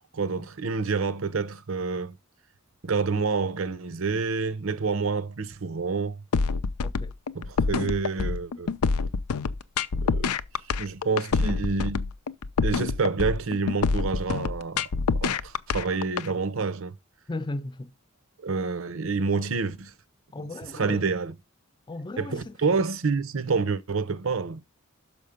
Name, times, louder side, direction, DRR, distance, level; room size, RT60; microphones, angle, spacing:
voice 1, 0.1-2.2 2.8-6.2 7.3-8.7 10.0-10.3 10.8-12.1 12.6-14.9 15.1-16.9 18.4-19.9 20.7-21.3 22.2-24.6, right 4 dB, 65° right, 0.7 m, -28 dB
sound 1, 6.3-16.3, left 4 dB, 90° left, 0.5 m, -26 dB
voice 2, 6.8-7.1 17.3-17.9 20.3-21.1 21.9-22.6, left 2 dB, 20° left, 0.4 m, -36 dB
6.4 x 5.2 x 5.1 m
head